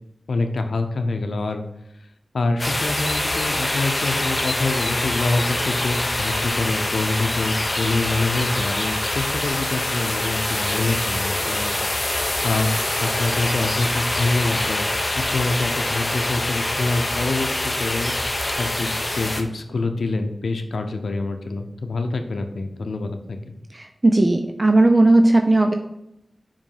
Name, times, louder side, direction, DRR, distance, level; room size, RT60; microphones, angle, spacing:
voice 1, 0.3-1.6 2.3-14.8 15.1-18.1 18.6-23.6, left 3 dB, 85° left, 6 dB, 0.7 m, -26 dB
sound 1, 2.6-19.4, left 1 dB, 30° left, 0.8 m, -25 dB
voice 2, 23.7-25.7, right 2 dB, 30° right, 5 dB, 0.5 m, -16 dB
5.2 x 4.9 x 5.5 m, 0.83 s
wide cardioid pair, 65°, 0 cm